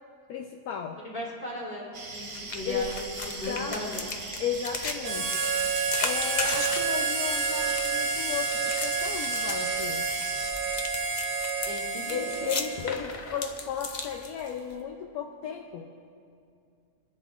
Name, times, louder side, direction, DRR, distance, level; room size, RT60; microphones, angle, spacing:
voice 1, 0.3-1.0 2.6-2.9 3.5-3.8 4.4-5.4 6.0-8.5 8.8-10.1 12.1-15.8, left 7 dB, 75° left, 2 dB, 1.1 m, -34 dB
voice 2, 1.0-4.0 11.6-12.2, left 1 dB, 30° left, -6 dB, 3.1 m, -37 dB
sound 1, 1.9-10.5, right 3 dB, 65° right, 1.8 m, -40 dB
sound 2, 2.3-14.8, left 4 dB, 45° left, 0.6 m, -37 dB
Harmonica, 5.0-13.1, right 5 dB, 90° right, 1.5 m, -29 dB
26.0 x 11.0 x 2.5 m, 2.4 s
omnidirectional pair, 1.7 m